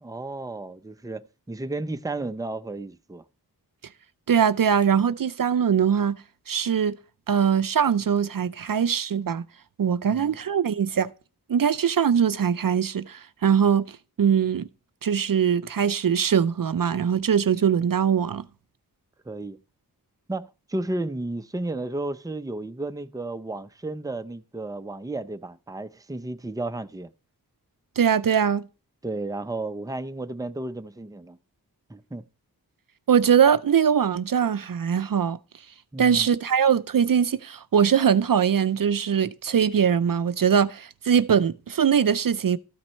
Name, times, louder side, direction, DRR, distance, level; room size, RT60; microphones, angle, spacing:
voice 1, 0.0-3.2 10.1-10.4 19.3-19.6 20.3-27.1 29.0-31.4 31.9-32.2 35.9-36.3, right 2 dB, 10° right, 0.6 m, -33 dB
voice 2, 4.3-6.2 6.5-7.0 7.3-9.4 9.8-11.1 11.5-14.7 15.0-18.4 28.0-28.6 33.1-35.4 36.0-42.6, right 7 dB, 60° right, 0.5 m, -22 dB
13.5 x 5.9 x 4.4 m
wide cardioid pair, 50°, 38 cm